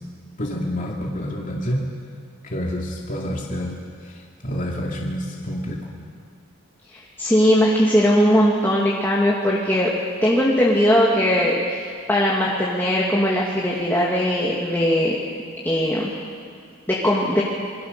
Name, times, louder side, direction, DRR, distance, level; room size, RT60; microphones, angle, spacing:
voice 1, 0.4-1.8 2.4-5.8, equal, 40° left, -2 dB, 2.5 m, -28 dB
voice 2, 6.9-9.9 10.2-15.2 15.6-16.1 16.9-17.4, equal, 10° left, -5 dB, 2.3 m, -19 dB
27.5 x 22.5 x 6.8 m, 2.2 s
head